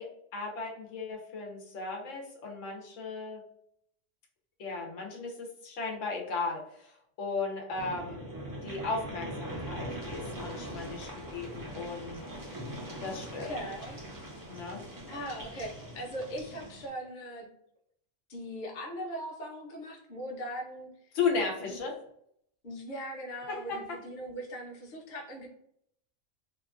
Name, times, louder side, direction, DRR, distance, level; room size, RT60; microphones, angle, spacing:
voice 1, 0.0-3.4 4.6-8.3 8.6-12.2 13.0-13.7 14.5-14.8 21.1-22.0 23.5-24.0, left 4 dB, 85° left, 0 dB, 1.1 m, -36 dB
sound 1, 7.7-16.9, right 1 dB, 30° right, 0.4 m, -41 dB
voice 2, 13.4-14.0 15.1-17.5 18.3-20.9 21.7-21.8 22.6-25.5, equal, 45° left, -1 dB, 0.8 m, -40 dB
2.9 x 2.3 x 2.4 m, 0.70 s
omnidirectional pair, 1.3 m